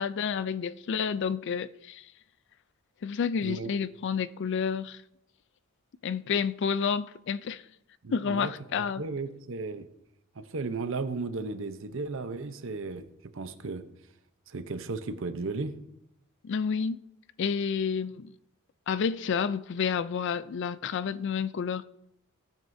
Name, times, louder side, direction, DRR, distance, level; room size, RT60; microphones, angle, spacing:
voice 1, 0.0-2.0 3.0-5.0 6.0-7.6 8.1-9.0 16.4-17.0 17.4-18.3 18.9-21.9, left 6 dB, 55° left, 0.4 m, -30 dB
voice 2, 8.0-9.9 10.4-13.0 13.3-13.8 14.5-15.8, right 3 dB, 60° right, 0.7 m, -35 dB
16.0 x 9.1 x 2.7 m
head